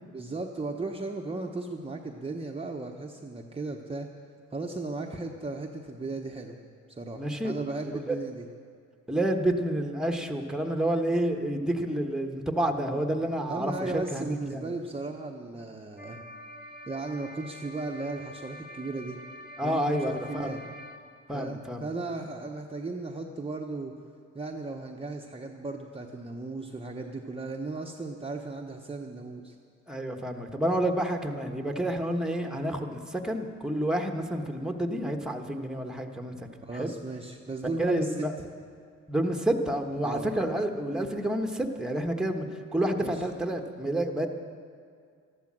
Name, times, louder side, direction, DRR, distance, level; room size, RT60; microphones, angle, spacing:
voice 1, 0.1-4.1 4.5-6.6 6.9-8.5 13.5-16.2 16.9-19.2 19.6-20.6 21.3-23.9 24.3-29.6 36.6-38.5 40.0-40.3 43.0-43.2, right 3 dB, 20° right, 1 dB, 1.0 m, -36 dB
voice 2, 7.2-7.5 8.1-8.2 9.1-14.7 19.6-20.5 21.3-21.8 29.9-36.5 36.7-36.9 37.8-38.3 39.1-42.5 42.7-44.3, right 1 dB, ahead, 4 dB, 1.3 m, -29 dB
sound 1, 16.0-21.0, equal, 35° left, 2.2 m, -46 dB
13.5 x 12.0 x 7.5 m, 2.2 s
cardioid pair, 90°, 30 cm